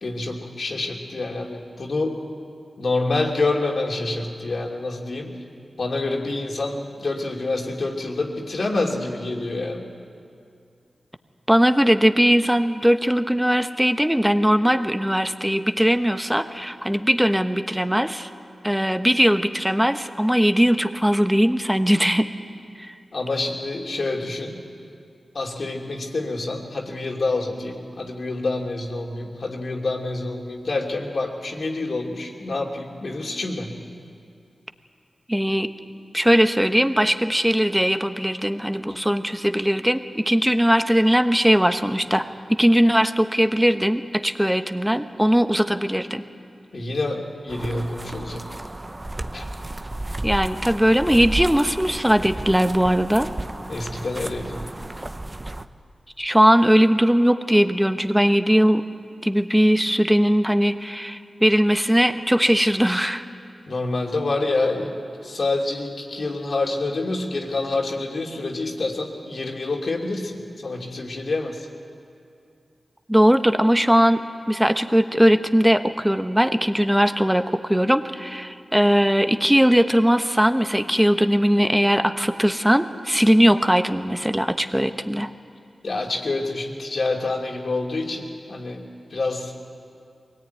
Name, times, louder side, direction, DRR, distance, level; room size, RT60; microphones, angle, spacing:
voice 1, 0.0-2.2 2.8-5.3 5.8-9.9 23.1-24.6 25.3-33.8 46.7-48.5 49.3-49.5 53.7-54.7 63.7-64.9 65.2-71.7 85.8-89.5, left 2 dB, 65° left, 0 dB, 2.9 m, -27 dB
voice 2, 11.5-18.3 18.6-22.3 35.3-35.7 36.1-46.2 50.2-53.3 56.2-58.8 59.2-63.2 73.1-74.2 74.5-85.3, equal, 5° right, 8 dB, 1.2 m, -19 dB
sound 1, 47.5-55.6, right 1 dB, 30° right, 0.8 m, -33 dB
23.0 x 17.5 x 9.4 m, 2.4 s
cardioid pair, 50°, 0 cm